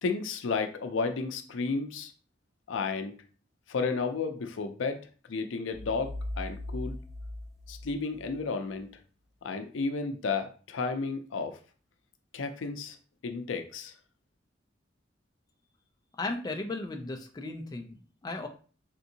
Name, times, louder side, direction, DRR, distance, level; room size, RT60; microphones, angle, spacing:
voice 1, 0.0-2.1 2.7-3.2 3.7-5.0 5.3-7.0 7.7-8.9 9.4-11.6 12.3-13.0 13.2-13.9, left 4 dB, 85° left, 7 dB, 0.5 m, -32 dB
sound 1, 5.7-8.4, left 1 dB, 5° right, 0.8 m, -39 dB
voice 2, 16.2-18.5, left 2 dB, 20° left, 4 dB, 0.3 m, -36 dB
3.6 x 2.5 x 2.7 m, 0.39 s
head